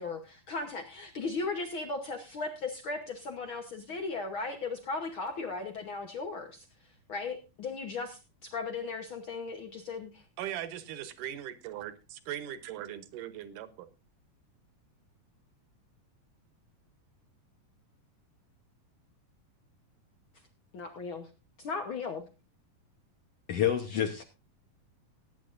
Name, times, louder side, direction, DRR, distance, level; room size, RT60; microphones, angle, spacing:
voice 1, 0.0-6.6 7.1-10.2 20.7-21.3 21.6-22.2, left 4 dB, 85° left, 5 dB, 1.1 m, -37 dB
voice 2, 10.4-13.9, right 11 dB, 70° right, 12 dB, 2.4 m, -39 dB
voice 3, 23.5-24.2, left 10 dB, 70° left, 6 dB, 1.5 m, -28 dB
19.0 x 9.7 x 2.6 m, 0.27 s
omnidirectional pair, 4.1 m